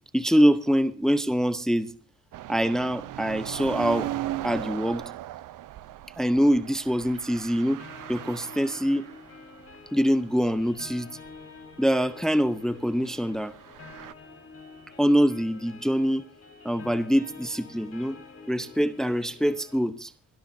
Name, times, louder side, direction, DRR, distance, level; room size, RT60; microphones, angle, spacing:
voice 1, 0.1-1.9 2.5-4.1 4.4-5.0 6.2-7.8 8.1-9.1 9.9-11.1 11.8-13.5 15.0-16.2 16.6-18.2 18.5-20.1, equal, ahead, 0.8 m, -24 dB
sound 1, 2.3-9.4 9.7-9.8 10.4-10.9 11.3-11.4 13.3-14.1, right 13 dB, 75° right, 0.7 m, -37 dB
sound 2, 7.8-19.8, left 4 dB, 50° left, 4.5 m, -48 dB
27.5 x 13.0 x 2.7 m
cardioid pair, 80°, 32 cm